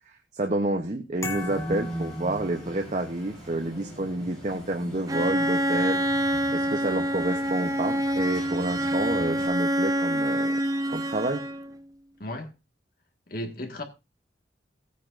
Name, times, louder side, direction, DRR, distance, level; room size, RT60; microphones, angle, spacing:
voice 1, 0.1-10.6 10.9-11.4, right 2 dB, 40° right, 0.8 m, -29 dB
sound 1, 1.2-3.1, left 4 dB, 15° left, 1.7 m, -39 dB
sound 2, 1.3-9.5, right 1 dB, ahead, 6.1 m, -40 dB
Bowed string instrument, 5.1-11.8, right 1 dB, 20° right, 0.6 m, -26 dB
voice 2, 12.2-12.5 13.3-13.8, left 1 dB, 55° left, 1.8 m, -34 dB
16.5 x 9.4 x 2.6 m
head